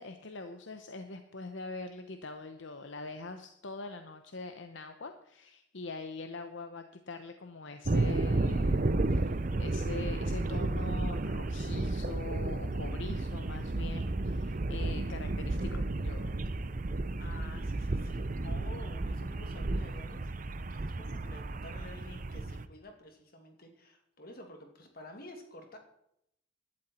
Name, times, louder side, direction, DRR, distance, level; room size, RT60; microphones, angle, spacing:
voice 1, 0.0-16.4, left 3 dB, 70° left, 7 dB, 0.9 m, -43 dB
sound 1, 7.8-22.7, right 2 dB, 40° right, 0.6 m, -32 dB
voice 2, 17.2-20.3 20.7-25.8, left 1 dB, 45° left, 4 dB, 2.4 m, -50 dB
15.5 x 12.0 x 4.4 m, 0.78 s
head